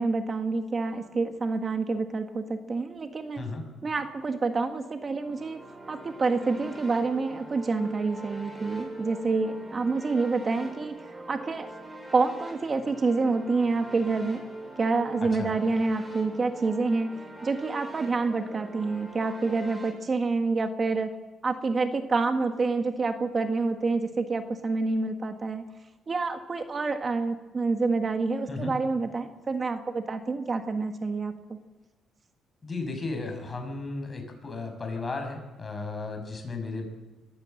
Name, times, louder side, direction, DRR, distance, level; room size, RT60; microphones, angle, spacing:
voice 1, 0.0-3.4 3.8-5.6 5.9-11.7 12.1-14.5 14.8-21.1 21.4-25.6 26.1-31.6, right 3 dB, 35° right, 6 dB, 1.6 m, -28 dB
sound 1, 5.1-19.9, right 2 dB, 10° right, 7.6 m, -42 dB
voice 2, 15.2-15.5 28.5-28.7 32.6-36.9, left 3 dB, 30° left, 4 dB, 6.4 m, -34 dB
23.5 x 15.0 x 7.8 m, 1.1 s
cardioid pair, 90°, 0 cm